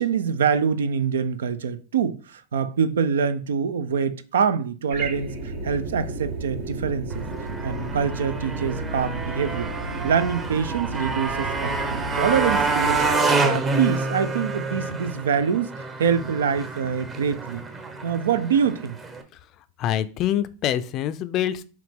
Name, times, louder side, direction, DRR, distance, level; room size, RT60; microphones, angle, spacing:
voice 1, 0.0-7.3 7.6-9.7 10.0-13.0 13.4-17.6 18.0-19.0, right 7 dB, 85° right, 0.4 m, -25 dB
sound 1, 4.9-13.1, right 3 dB, 70° right, 1.2 m, -33 dB
Motorcycle, 7.1-19.2, right 3 dB, 25° right, 0.8 m, -28 dB
voice 2, 19.8-21.6, left 11 dB, 45° left, 0.4 m, -25 dB
4.8 x 3.0 x 3.6 m
hypercardioid pair, 100°, 0 cm